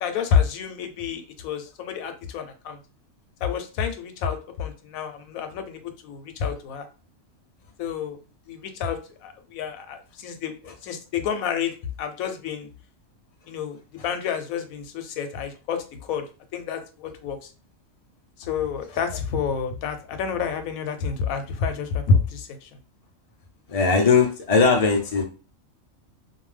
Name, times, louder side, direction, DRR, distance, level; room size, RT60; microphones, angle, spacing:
voice 1, 0.0-2.8 3.4-6.9 7.8-8.2 8.5-11.7 12.0-12.7 13.5-16.2 16.5-17.5 18.4-22.7, left 6 dB, 90° left, 7 dB, 1.0 m, -28 dB
voice 2, 23.7-25.2, left 4 dB, 50° left, 3 dB, 0.4 m, -19 dB
2.6 x 2.2 x 3.2 m, 0.33 s
omnidirectional pair, 1.4 m